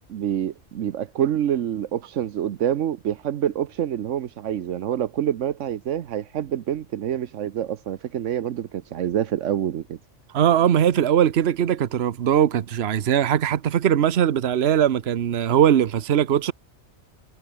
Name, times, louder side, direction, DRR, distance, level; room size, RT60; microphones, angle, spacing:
voice 1, 0.1-10.0, right 10 dB, 85° right, 1.2 m, -26 dB
voice 2, 10.3-16.5, right 9 dB, 60° right, 1.1 m, -20 dB
omnidirectional pair, 1.2 m